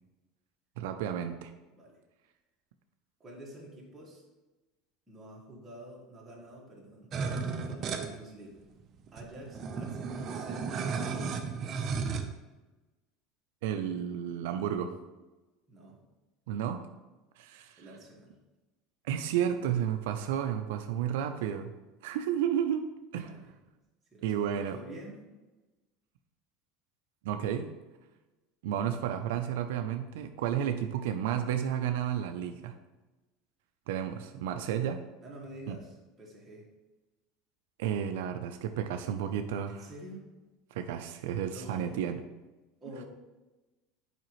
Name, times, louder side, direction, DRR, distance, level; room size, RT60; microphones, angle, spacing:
voice 1, 0.8-1.5 13.6-14.9 16.5-16.9 17.4-17.8 19.0-21.7 22.0-23.3 24.2-24.8 27.2-27.7 28.6-32.8 33.9-35.0 35.7-35.8 37.8-39.9 40.7-42.2, right 9 dB, 85° right, 7 dB, 0.4 m, -32 dB
voice 2, 3.2-4.2 5.1-7.1 7.4-8.6 9.1-11.5 15.7-16.0 17.8-18.3 23.2-23.5 24.1-25.2 35.2-36.6 39.7-40.3 41.5-42.0 42.8-43.0, right 1 dB, 15° right, -4 dB, 1.8 m, -48 dB
sound 1, 7.1-8.1 8.8-8.9 9.1-12.2, right 5 dB, 35° right, 0.7 m, -34 dB
7.5 x 4.9 x 3.1 m, 1.1 s
supercardioid pair, 140°, 0 cm